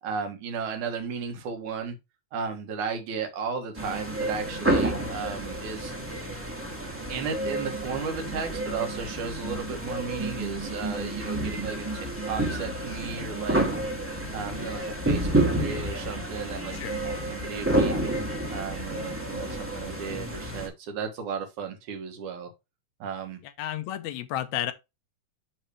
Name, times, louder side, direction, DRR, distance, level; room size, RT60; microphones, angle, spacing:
voice 1, 0.0-2.0 2.3-5.9 7.1-13.6 14.3-16.7 17.0-18.0 18.5-22.5 23.0-23.4, right 5 dB, 70° right, 2.8 m, -34 dB
sound 1, 3.8-20.7, right 1 dB, 5° right, 1.3 m, -30 dB
voice 2, 23.4-24.7, left 12 dB, 70° left, 1.9 m, -32 dB
10.5 x 3.6 x 3.2 m
omnidirectional pair, 3.7 m